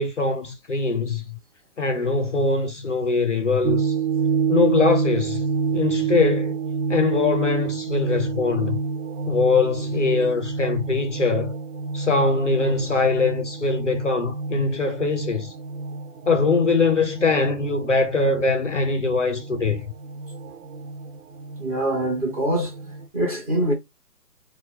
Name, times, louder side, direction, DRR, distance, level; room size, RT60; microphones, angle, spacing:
voice 1, 0.0-1.4 1.8-4.0 4.5-5.4 5.7-6.6 6.9-8.8 9.3-11.5 11.9-15.5 16.3-19.9, left 4 dB, 50° left, 0.5 m, -22 dB
sound 1, 3.6-23.1, right 5 dB, 60° right, 0.6 m, -28 dB
voice 2, 21.6-22.7 23.1-23.7, right 1 dB, 20° right, 1.1 m, -24 dB
4.3 x 2.2 x 3.1 m
hypercardioid pair, 155°, 50 cm